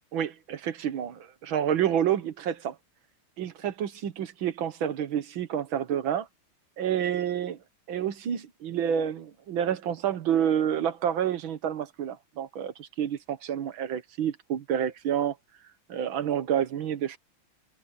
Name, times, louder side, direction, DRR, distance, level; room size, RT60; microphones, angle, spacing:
voice 1, 0.1-2.8 3.4-6.3 6.8-7.6 7.9-15.4 15.9-17.2, right 9 dB, 80° right, 2.0 m, -29 dB
omnidirectional pair, 2.2 m